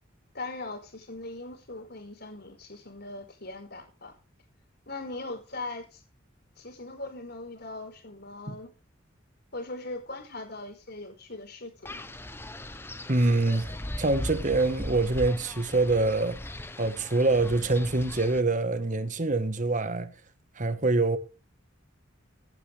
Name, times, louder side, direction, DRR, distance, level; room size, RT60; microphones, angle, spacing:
voice 1, 0.3-4.1 4.9-6.0 6.6-8.7 9.5-12.0, left 2 dB, 55° left, 5.2 m, -40 dB
Wind, 11.9-18.4, left 1 dB, 10° left, 0.9 m, -38 dB
voice 2, 13.1-16.4 16.8-20.1 20.6-21.2, right 2 dB, 40° right, 1.4 m, -25 dB
17.0 x 11.5 x 3.4 m
head